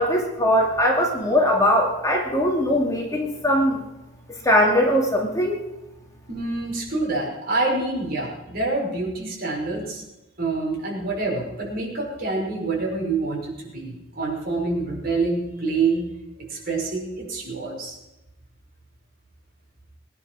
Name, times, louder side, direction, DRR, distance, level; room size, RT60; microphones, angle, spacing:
voice 1, 0.0-3.8 4.4-5.6, equal, 15° left, 0 dB, 2.4 m, -20 dB
voice 2, 6.3-10.0 10.4-16.1 16.4-18.0, right 3 dB, 50° right, -2 dB, 5.6 m, -26 dB
21.0 x 10.5 x 6.3 m, 0.98 s
head